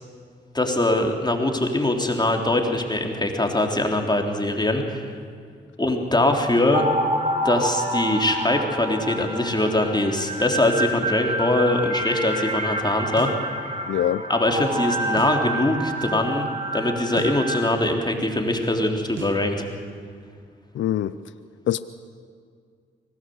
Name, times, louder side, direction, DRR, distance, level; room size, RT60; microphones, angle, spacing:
voice 1, 0.5-5.1 5.8-6.9 7.4-13.3 14.3-16.5 16.7-19.7, left 1 dB, 20° left, 3 dB, 3.8 m, -22 dB
sound 1, 6.7-17.7, right 1 dB, 35° right, 3.5 m, -28 dB
sound 2, 13.2-13.5 15.2-15.5 17.2-17.5 19.2-19.5, right 8 dB, 85° right, 1.3 m, -39 dB
voice 2, 13.9-14.2 20.7-21.1 21.7-21.8, left 11 dB, 80° left, 15 dB, 0.6 m, -23 dB
25.0 x 18.0 x 8.1 m, 2.1 s
supercardioid pair, 50°, 20 cm